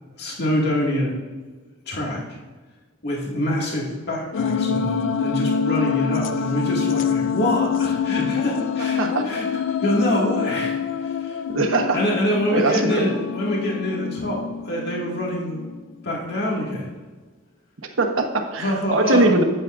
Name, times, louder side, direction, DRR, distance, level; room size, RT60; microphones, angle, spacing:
voice 1, 0.2-1.1 1.9-2.2 3.0-9.5 9.8-11.4 11.9-15.7 16.0-16.9 18.6-19.3, left 1 dB, 55° left, -3 dB, 2.2 m, -25 dB
sound 1, 4.3-15.8, left 6 dB, 70° left, 0.4 m, -26 dB
voice 2, 11.5-12.0 12.5-13.2 18.0-19.4, right 2 dB, 90° right, 4 dB, 1.2 m, -21 dB
10.5 x 9.1 x 2.6 m, 1.3 s
head